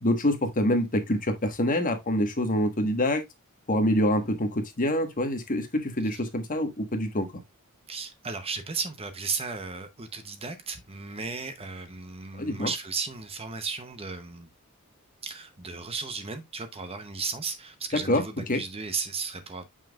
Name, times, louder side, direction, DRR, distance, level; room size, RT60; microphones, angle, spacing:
voice 1, 0.0-3.2 3.7-7.3 12.4-12.7 18.1-18.2 18.5-18.6, left 1 dB, 40° left, 1.4 m, -26 dB
voice 2, 7.9-14.5 15.2-19.6, right 4 dB, 25° right, 0.8 m, -35 dB
7.0 x 6.0 x 2.3 m
head